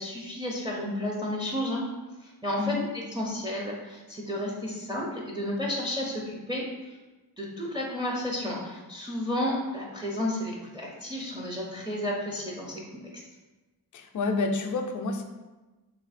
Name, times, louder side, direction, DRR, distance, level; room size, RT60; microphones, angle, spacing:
voice 1, 0.0-1.8 2.2-6.9 7.4-12.8 13.1-13.2, left 1 dB, 10° right, -3 dB, 0.5 m, -32 dB
voice 2, 13.9-15.2, left 3 dB, 50° left, 4 dB, 0.4 m, -29 dB
3.3 x 2.6 x 4.1 m, 1.2 s
wide cardioid pair, 140°, 39 cm